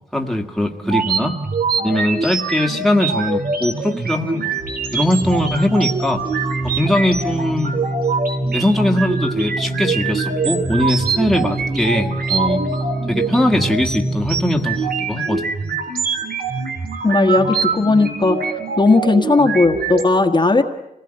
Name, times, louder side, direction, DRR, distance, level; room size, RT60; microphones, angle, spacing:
voice 1, 0.1-1.4 1.8-4.5 4.9-6.2 6.6-7.8 8.5-12.6 13.1-15.5, left 1 dB, ahead, 1 dB, 1.7 m, -20 dB
sound 1, 0.8-20.0, right 4 dB, 85° right, 3.5 m, -24 dB
Organ, 4.5-15.2, right 2 dB, 30° right, 1.5 m, -27 dB
voice 2, 17.0-18.4 18.8-20.6, left 3 dB, 30° left, 4 dB, 1.5 m, -15 dB
27.5 x 19.0 x 9.9 m, 0.86 s
wide cardioid pair, 155°, 15 cm